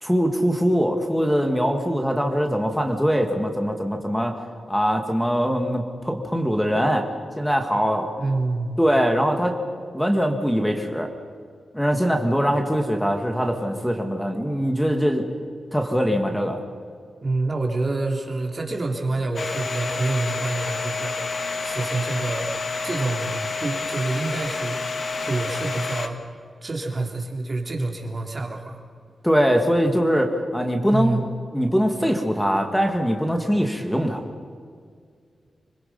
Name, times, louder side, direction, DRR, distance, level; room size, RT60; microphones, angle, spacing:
voice 1, 0.0-4.4 4.7-7.1 7.4-8.2 8.8-9.6 9.9-11.1 11.7-15.2 15.7-16.6 29.2-31.2 31.5-34.2, equal, 5° left, 4 dB, 2.0 m, -22 dB
voice 2, 8.2-8.8 17.2-21.3 21.6-22.5 22.8-24.8 25.2-26.2 26.6-28.8 29.9-30.0 30.8-31.2, right 2 dB, 40° right, 2 dB, 3.3 m, -27 dB
Domestic sounds home sounds, 19.4-26.1, left 4 dB, 50° left, 1.5 m, -29 dB
26.0 x 21.5 x 5.5 m, 2.1 s
wide cardioid pair, 95°, 0 cm